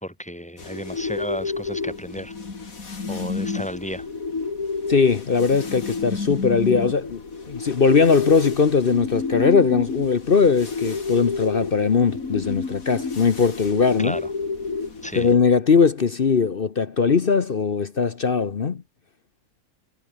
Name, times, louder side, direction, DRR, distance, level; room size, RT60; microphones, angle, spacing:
voice 1, 0.0-2.3 3.1-4.1 14.0-14.3 15.0-15.3, equal, 5° left, 2.2 m, -33 dB
sound 1, 0.6-15.3, left 4 dB, 70° left, 3.2 m, -30 dB
voice 2, 4.9-7.2 7.5-14.2 15.1-18.8, left 5 dB, 45° left, 1.0 m, -20 dB
omnidirectional pair, 1.6 m